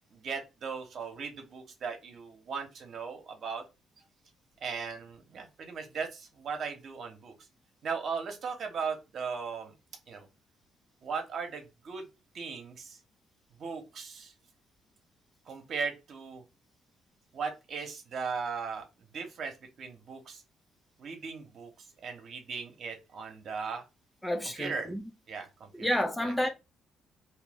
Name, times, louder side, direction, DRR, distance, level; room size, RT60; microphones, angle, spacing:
voice 1, 0.1-3.6 4.6-7.3 7.8-9.7 10.1-10.3 11.0-12.0 12.3-13.0 13.6-14.3 15.4-16.4 17.3-18.8 19.1-20.4 21.0-23.8 24.6-24.9 25.3-25.9 26.2-26.5, right 5 dB, 60° right, 1.1 m, -38 dB
voice 2, 24.2-25.0 25.7-26.5, equal, 10° left, 0.6 m, -30 dB
3.1 x 2.8 x 3.7 m
cardioid pair, 90°, 0 cm